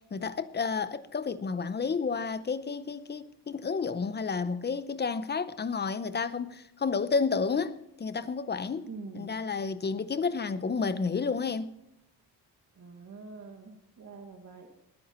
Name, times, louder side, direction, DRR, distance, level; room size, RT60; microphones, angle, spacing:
voice 1, 0.1-8.9 9.1-11.7, left 5 dB, 25° left, 0.6 m, -31 dB
voice 2, 8.9-9.4 12.8-14.7, right 4 dB, 40° right, 1.7 m, -45 dB
20.5 x 9.1 x 4.4 m
wide cardioid pair, 175°, 41 cm